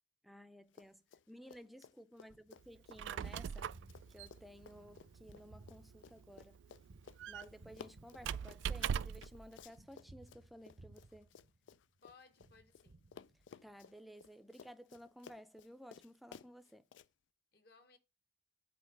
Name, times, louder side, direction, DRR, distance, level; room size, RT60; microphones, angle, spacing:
voice 1, 0.2-3.8 4.1-6.6 7.3-11.3 13.6-16.8, equal, ahead, 0.4 m, -56 dB
Run, 0.7-1.2 1.5-12.9 13.1-17.1, left 7 dB, 90° left, 0.4 m, -57 dB
Gunshot gunfire, 2.3-12.0 12.4-13.8, right 2 dB, 60° right, 0.7 m, -61 dB
Squeak, 2.8-9.4, right 8 dB, 90° right, 0.3 m, -42 dB
voice 2, 12.0-13.2 17.5-18.0, left 5 dB, 55° left, 1.2 m, -63 dB
8.6 x 4.4 x 4.6 m
head